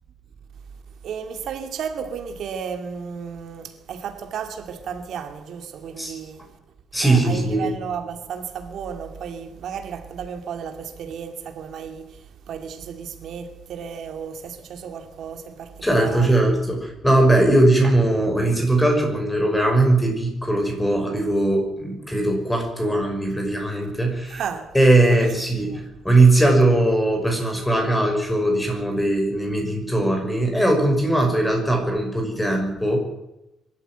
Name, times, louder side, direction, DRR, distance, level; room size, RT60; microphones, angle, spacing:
voice 1, 1.0-6.6 7.0-16.4 24.3-24.7 25.1-25.8, right 7 dB, 60° right, 2.3 m, -33 dB
voice 2, 6.9-7.7 15.8-24.4 24.7-33.0, right 2 dB, 5° left, 5.9 m, -20 dB
23.5 x 13.5 x 9.2 m
cardioid pair, 150°, 0 cm